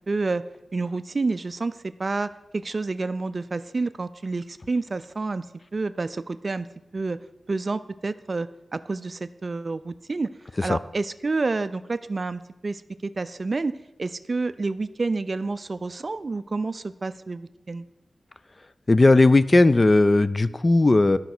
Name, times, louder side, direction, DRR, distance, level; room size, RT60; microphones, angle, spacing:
voice 1, 0.1-0.4 0.7-5.5 5.7-6.7 6.9-7.2 7.5-10.3 10.6-17.9, right 3 dB, 40° right, 14 dB, 0.4 m, -29 dB
voice 2, 18.9-21.2, left 2 dB, 30° left, 14 dB, 0.4 m, -17 dB
11.5 x 5.6 x 6.0 m, 1.0 s
wide cardioid pair, 125°, 0 cm